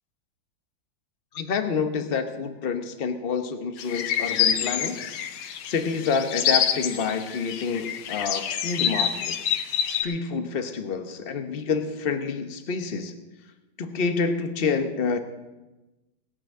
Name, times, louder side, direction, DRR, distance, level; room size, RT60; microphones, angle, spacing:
voice 1, 1.3-5.0 5.3-9.6 9.9-13.1 13.8-15.2, left 5 dB, 40° left, 9 dB, 0.9 m, -28 dB
sound 1, 3.8-10.0, left 9 dB, 90° left, 1.7 m, -27 dB
19.0 x 6.3 x 7.8 m, 1.1 s
omnidirectional pair, 2.2 m